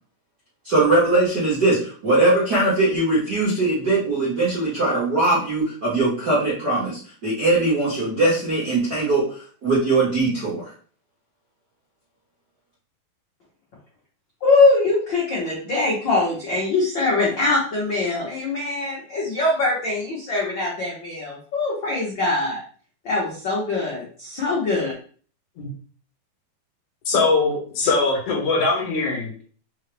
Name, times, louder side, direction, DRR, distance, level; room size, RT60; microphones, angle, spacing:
voice 1, 0.6-10.7, right 2 dB, 45° right, -9 dB, 1.3 m, -21 dB
voice 2, 14.4-22.6 23.0-24.9, left 3 dB, 85° left, -6 dB, 1.0 m, -22 dB
voice 3, 27.1-29.4, left 3 dB, 55° left, -2 dB, 2.1 m, -21 dB
5.5 x 2.9 x 3.3 m, 0.44 s
omnidirectional pair, 4.1 m